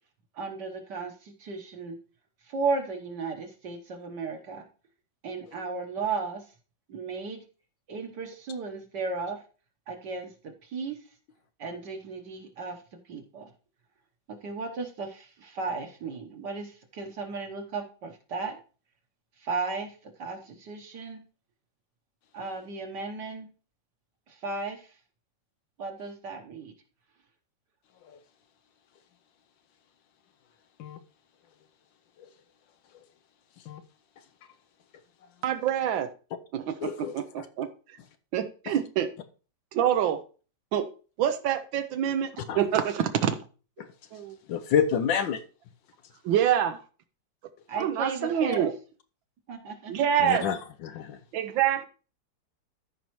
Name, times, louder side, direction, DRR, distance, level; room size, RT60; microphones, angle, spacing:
voice 1, 0.3-1.9 2.4-4.7 5.2-6.4 6.9-7.4 7.9-9.4 9.9-11.0 11.6-12.8 13.1-13.5 14.3-18.6 19.4-21.2 22.3-23.5 24.3-24.9 25.8-26.7 47.7-48.6 49.5-49.9, right 4 dB, 65° right, 1.7 m, -35 dB
voice 2, 35.4-36.1 36.5-37.7 38.3-39.1 39.7-40.2 40.7-40.9 41.2-43.4 44.1-44.4 46.2-46.8 47.8-48.7 49.9-50.5 51.3-51.9, right 10 dB, 85° right, 1.5 m, -26 dB
voice 3, 36.8-37.5 42.5-42.6 44.5-45.4 50.2-51.2, left 7 dB, 80° left, 1.4 m, -28 dB
13.5 x 5.4 x 3.1 m
omnidirectional pair, 2.1 m